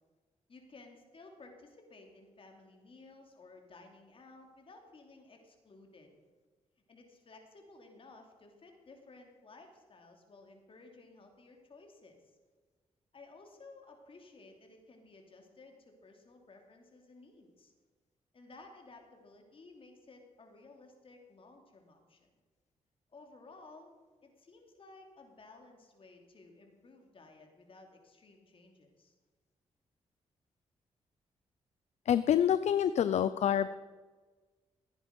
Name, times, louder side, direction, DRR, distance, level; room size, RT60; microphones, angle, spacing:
voice 1, 0.5-6.1 6.9-12.2 13.1-17.7 18.3-22.3 23.1-23.9 24.2-29.1, left 3 dB, 45° left, 3 dB, 2.9 m, -56 dB
voice 2, 32.1-33.8, left 9 dB, 65° left, 14 dB, 0.4 m, -27 dB
15.5 x 9.7 x 5.3 m, 1.4 s
cardioid pair, 75°, 12 cm